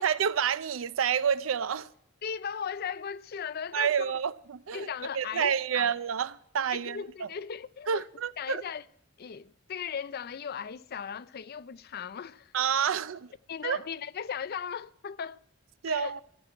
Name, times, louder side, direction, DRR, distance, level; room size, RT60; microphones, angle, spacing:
voice 1, 0.0-1.9 3.7-4.9 5.1-7.3 7.9-8.6 12.5-13.3 13.6-13.8 15.8-16.2, right 7 dB, 90° right, 0.5 m, -29 dB
voice 2, 2.2-4.1 4.7-5.9 6.7-8.0 8.4-8.8 9.2-12.5 13.5-15.4 15.8-16.1, left 7 dB, 50° left, 0.4 m, -37 dB
14.0 x 6.0 x 9.2 m
head